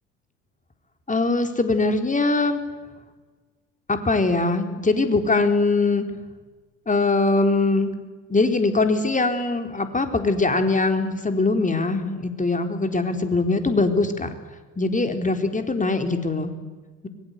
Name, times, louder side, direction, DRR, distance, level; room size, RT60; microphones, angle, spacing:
voice 1, 1.1-2.6 3.9-6.1 6.9-7.9 8.3-14.3 14.8-16.5, left 3 dB, 20° left, 7 dB, 4.1 m, -22 dB
25.5 x 23.0 x 8.4 m, 1.3 s
figure-of-eight pair, 55°, 37 cm